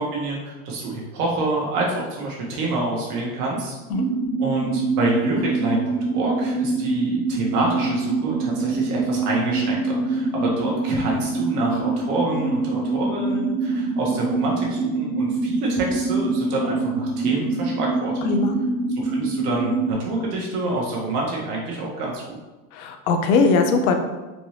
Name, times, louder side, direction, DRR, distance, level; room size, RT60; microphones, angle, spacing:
voice 1, 0.0-3.8 4.4-18.2 19.0-22.4, right 2 dB, 85° right, -3 dB, 1.5 m, -27 dB
sound 1, 3.9-19.9, right 3 dB, 60° right, 1.4 m, -25 dB
voice 2, 18.2-18.6 22.7-24.0, left 4 dB, 70° left, 5 dB, 0.7 m, -20 dB
4.3 x 2.8 x 3.3 m, 1.1 s
supercardioid pair, 115°, 45 cm